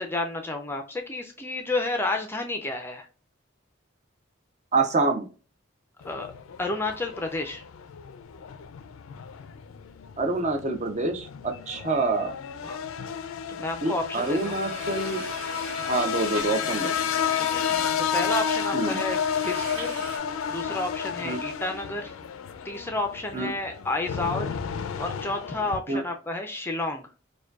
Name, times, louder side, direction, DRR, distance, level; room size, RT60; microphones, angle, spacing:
voice 1, 0.0-3.1 6.0-6.3 6.6-7.6 12.6-12.8 13.5-14.6 17.3-17.6 18.0-20.0 20.5-22.1 22.6-24.6 25.0-27.1, left 2 dB, 10° left, 4 dB, 0.4 m, -31 dB
voice 2, 4.7-5.3 10.2-12.3 13.8-15.2 15.8-16.9 18.7-19.0 21.2-21.4 23.3-23.5 25.9-26.0, right 3 dB, 35° right, 5 dB, 0.6 m, -26 dB
sound 1, 6.0-25.8, left 7 dB, 80° left, 0.4 m, -31 dB
sound 2, 14.1-20.2, right 2 dB, 90° right, 1.1 m, -41 dB
4.9 x 2.2 x 2.3 m, 0.36 s
head